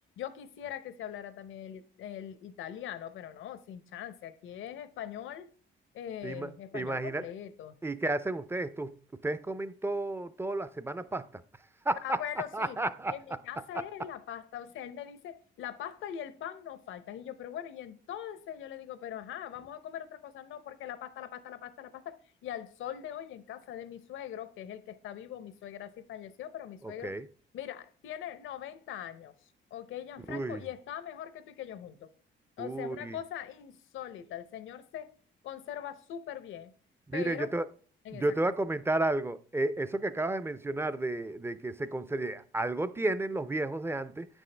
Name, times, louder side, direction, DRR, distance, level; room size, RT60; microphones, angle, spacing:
voice 1, 0.2-5.5 5.9-7.8 12.0-12.8 13.1-22.2 22.4-27.2 27.5-32.1 32.6-35.1 35.4-36.7 37.1-37.5 38.0-38.5, left 10 dB, 80° left, 0.8 m, -41 dB
voice 2, 6.2-7.2 7.8-11.4 11.9-12.2 12.5-13.2 26.8-27.3 30.3-30.6 32.6-33.2 37.1-37.7 38.1-44.3, right 2 dB, 10° right, 0.5 m, -32 dB
9.0 x 6.2 x 3.3 m
cardioid pair, 90°, 20 cm